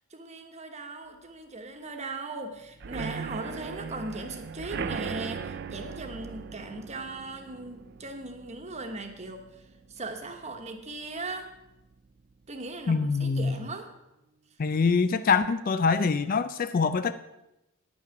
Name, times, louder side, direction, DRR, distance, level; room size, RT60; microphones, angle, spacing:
voice 1, 0.1-11.5 12.5-13.9, right 2 dB, 30° right, 1.2 m, -39 dB
sound 1, 2.8-10.4 10.8-11.2 11.4-11.5 11.9-12.0, right 5 dB, 50° right, 0.5 m, -39 dB
voice 2, 12.9-13.5 14.6-17.1, left 5 dB, 40° left, 0.4 m, -24 dB
10.0 x 8.6 x 5.8 m
head